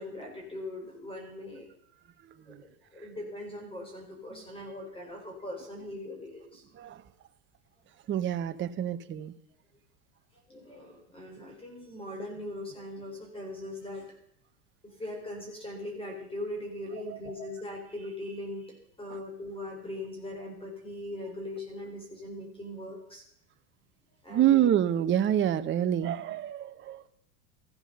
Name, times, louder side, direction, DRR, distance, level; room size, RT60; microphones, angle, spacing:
voice 1, 0.0-1.7 2.5-6.6 10.5-14.1 14.8-23.2 24.2-24.6 26.0-26.1, left 1 dB, 10° left, 1 dB, 4.4 m, -40 dB
voice 2, 8.1-9.3 17.1-17.4 19.1-19.2 24.3-27.0, right 11 dB, 25° right, 10 dB, 0.9 m, -27 dB
14.5 x 13.0 x 6.8 m, 0.72 s
supercardioid pair, 120°, 46 cm